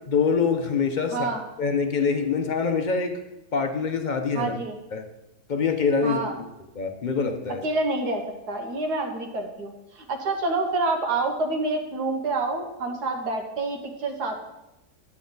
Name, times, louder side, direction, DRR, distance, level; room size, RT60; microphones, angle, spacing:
voice 1, 0.1-1.3 1.6-3.2 3.5-4.5 4.9-5.1 5.5-6.2 6.7-7.6, left 5 dB, 40° left, 6 dB, 0.7 m, -24 dB
voice 2, 1.1-1.4 4.3-4.8 6.0-6.3 7.6-14.4, right 2 dB, 90° right, 3 dB, 1.8 m, -28 dB
10.5 x 8.5 x 3.9 m, 0.94 s
omnidirectional pair, 1.7 m